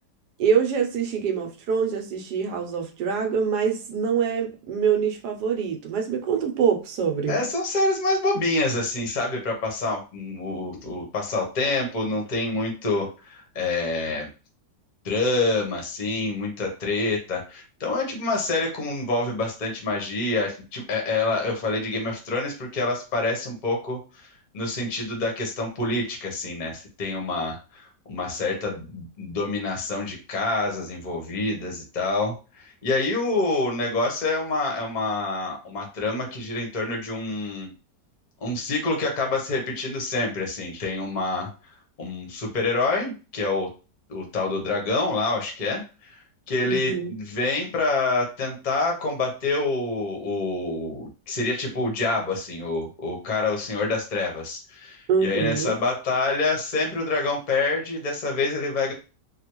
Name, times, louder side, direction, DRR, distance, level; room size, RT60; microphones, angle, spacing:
voice 1, 0.4-7.4 46.7-47.1 55.1-55.7, right 7 dB, 70° right, 1.2 m, -25 dB
voice 2, 7.3-14.3 15.0-24.0 24.5-27.8 28.1-37.7 38.4-41.5 42.0-43.7 44.1-46.1 46.5-58.9, left 3 dB, 35° left, 0.8 m, -27 dB
3.3 x 2.3 x 3.0 m
omnidirectional pair, 1.8 m